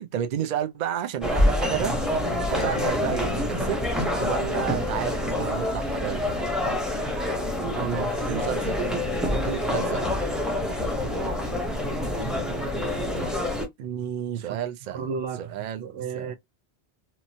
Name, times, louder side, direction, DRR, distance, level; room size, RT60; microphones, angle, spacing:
voice 1, 0.0-1.9 2.4-3.8 4.2-6.3 8.2-8.8 9.3-10.1 14.4-15.9 16.1-16.3, right 10 dB, 55° right, 0.5 m, -31 dB
sound 1, 1.2-13.7, left 1 dB, ahead, 0.5 m, -26 dB
voice 2, 7.7-8.1 13.8-14.6 14.9-15.5 15.8-16.4, right 7 dB, 80° right, 0.9 m, -32 dB
3.0 x 2.1 x 2.7 m
omnidirectional pair, 1.1 m